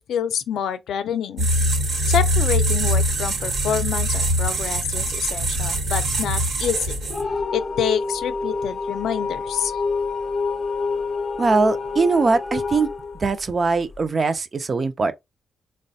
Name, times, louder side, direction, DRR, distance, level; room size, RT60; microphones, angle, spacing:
voice 1, 0.1-1.5 2.1-7.0 7.5-9.8, left 8 dB, 90° left, 0.4 m, -27 dB
sound 1, 1.4-7.4, equal, 70° right, 1.0 m, -22 dB
sound 2, 7.1-14.0, left 4 dB, 30° left, 0.4 m, -27 dB
voice 2, 11.4-12.9 13.2-15.1, right 4 dB, 30° right, 0.4 m, -21 dB
3.9 x 2.1 x 2.6 m
wide cardioid pair, 165°, 0 cm